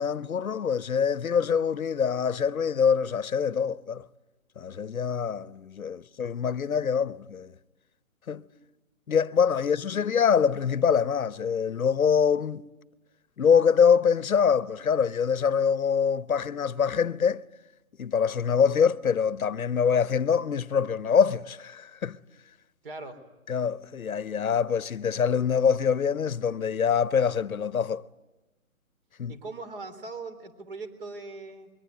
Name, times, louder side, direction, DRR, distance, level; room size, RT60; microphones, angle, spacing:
voice 1, 0.0-4.0 4.6-7.5 8.3-8.4 9.1-12.6 13.4-17.4 18.0-22.2 23.5-28.0 29.2-29.3, left 7 dB, 70° left, 1.0 m, -24 dB
voice 2, 22.8-23.2 29.3-31.7, right 3 dB, 40° right, 3.7 m, -40 dB
26.5 x 23.0 x 9.4 m
hypercardioid pair, 160°, 43 cm